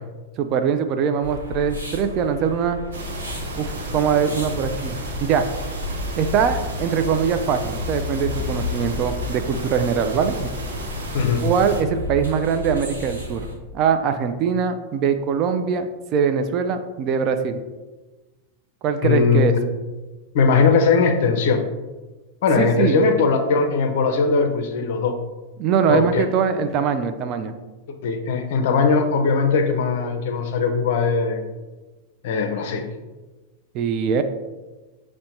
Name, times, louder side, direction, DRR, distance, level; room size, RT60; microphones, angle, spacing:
voice 1, 0.4-2.8 3.6-5.5 6.2-10.6 11.4-13.5 13.7-17.6 18.8-19.5 22.6-23.1 25.6-27.5 33.7-34.2, right 6 dB, 35° right, 8 dB, 0.3 m, -22 dB
sound 1, 1.2-13.5, left 2 dB, 85° right, 1.0 m, -33 dB
sound 2, 2.9-11.8, right 1 dB, 65° right, 0.7 m, -33 dB
voice 2, 19.0-19.6 20.3-21.6 22.4-25.1 25.9-26.2 28.0-31.4 32.2-32.9, left 5 dB, 55° left, 5 dB, 0.5 m, -19 dB
6.1 x 2.1 x 2.8 m, 1.2 s
figure-of-eight pair, 90°, 0 cm